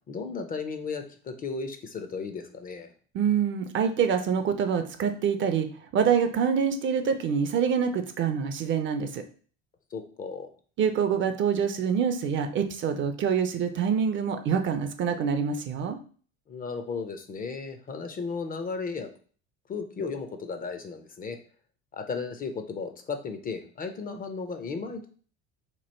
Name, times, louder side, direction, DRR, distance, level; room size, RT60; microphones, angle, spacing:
voice 1, 0.1-2.9 9.9-10.5 16.5-19.1 19.7-21.4 21.9-25.1, left 4 dB, 30° left, 7 dB, 0.5 m, -35 dB
voice 2, 3.1-9.2 10.8-16.0, right 7 dB, 40° right, 8 dB, 0.5 m, -26 dB
3.0 x 2.4 x 4.3 m, 0.42 s
supercardioid pair, 105°, 31 cm